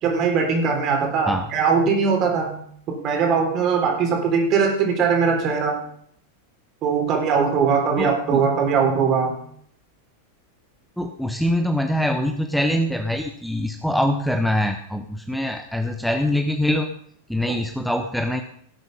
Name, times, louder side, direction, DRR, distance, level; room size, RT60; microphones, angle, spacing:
voice 1, 0.0-2.5 2.9-5.8 6.8-9.4, right 5 dB, 35° right, 3 dB, 3.8 m, -20 dB
voice 2, 8.0-8.4 11.0-16.9 17.3-18.4, left 1 dB, ahead, 5 dB, 0.9 m, -24 dB
17.5 x 8.1 x 5.4 m, 0.65 s
figure-of-eight pair, 90°, 0 cm